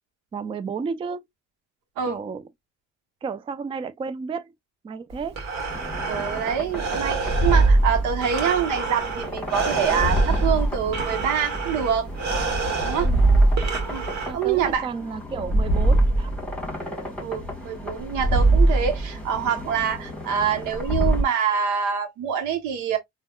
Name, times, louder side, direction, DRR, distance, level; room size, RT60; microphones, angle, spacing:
voice 1, 0.3-1.3 2.1-2.4 3.2-4.5 4.8-5.4 13.0-13.3 14.3-16.3, right 5 dB, 20° right, 0.3 m, -32 dB
Breathing, 5.1-14.8, right 4 dB, 60° right, 1.3 m, -30 dB
sound 1, 5.7-21.2, right 2 dB, 5° left, 1.4 m, -24 dB
voice 2, 6.1-12.1 12.8-13.1 13.9-14.0 14.3-14.9 17.2-23.0, right 8 dB, 85° right, 0.9 m, -25 dB
3.4 x 2.3 x 2.2 m
supercardioid pair, 75°, 30 cm